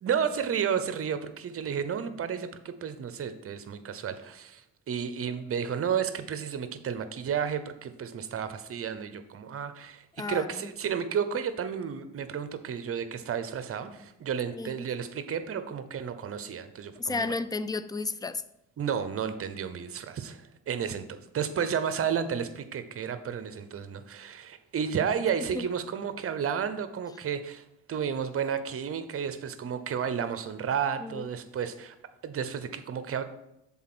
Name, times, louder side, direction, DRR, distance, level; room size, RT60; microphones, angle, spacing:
voice 1, 0.0-17.4 18.8-31.9 32.2-33.2, right 7 dB, 50° right, 11 dB, 0.8 m, -32 dB
voice 2, 10.2-10.7 14.5-14.8 17.0-18.4 25.5-25.7 31.0-31.3, left 3 dB, 15° left, 15 dB, 0.3 m, -33 dB
7.2 x 4.0 x 6.1 m, 0.86 s
cardioid pair, 90°, 30 cm